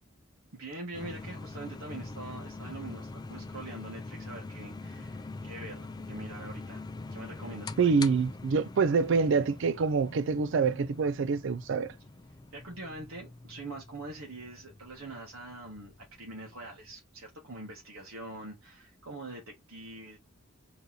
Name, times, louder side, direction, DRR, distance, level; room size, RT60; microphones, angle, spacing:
voice 1, 0.5-6.8 7.1-8.0 12.5-20.2, right 2 dB, 75° right, 1.3 m, -44 dB
sound 1, 0.9-16.9, left 3 dB, 20° left, 0.4 m, -44 dB
voice 2, 7.8-11.9, right 5 dB, 60° right, 0.4 m, -26 dB
4.0 x 2.9 x 3.8 m
head